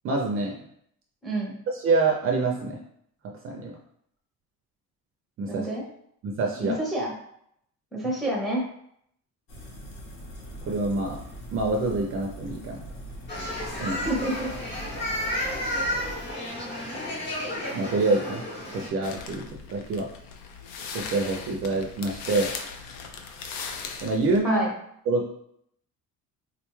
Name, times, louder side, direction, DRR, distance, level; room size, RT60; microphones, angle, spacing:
voice 1, 0.0-0.6 1.7-2.8 3.4-3.8 5.4-5.7 6.2-6.8 10.6-11.2 11.5-12.8 13.8-14.0 17.7-18.4 18.7-20.1 20.9-22.5 24.0-24.6 25.1-25.3, right 3 dB, 40° right, 1 dB, 0.4 m, -26 dB
voice 2, 1.2-1.5 5.5-5.8 6.6-7.1 7.9-8.6 14.0-14.5 24.4-24.7, right 1 dB, ahead, -2 dB, 0.6 m, -28 dB
sound 1, 9.5-16.3, right 1 dB, 65° left, 0.9 m, -41 dB
sound 2, 13.3-18.9, left 1 dB, 35° left, 0.8 m, -32 dB
sound 3, 19.0-24.4, left 5 dB, 85° left, 0.5 m, -38 dB
3.7 x 2.2 x 3.0 m, 0.70 s
cardioid pair, 175°, 33 cm